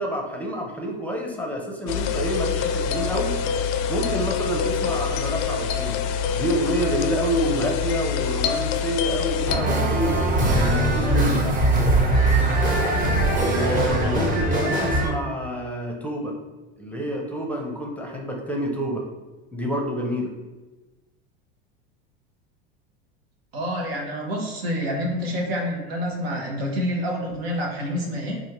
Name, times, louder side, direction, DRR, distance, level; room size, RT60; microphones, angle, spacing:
voice 1, 0.0-3.3 3.9-6.0 6.3-11.6 13.2-16.3 16.8-19.0 19.5-20.3, right 1 dB, 5° left, 0 dB, 0.6 m, -28 dB
sound 1, 1.9-9.6, left 7 dB, 50° left, 0.4 m, -25 dB
sound 2, 9.5-15.1, right 1 dB, 30° right, 0.9 m, -21 dB
voice 2, 23.5-28.4, equal, 80° right, 0 dB, 1.0 m, -27 dB
4.2 x 2.4 x 2.9 m, 1.1 s
hypercardioid pair, 90°, 30 cm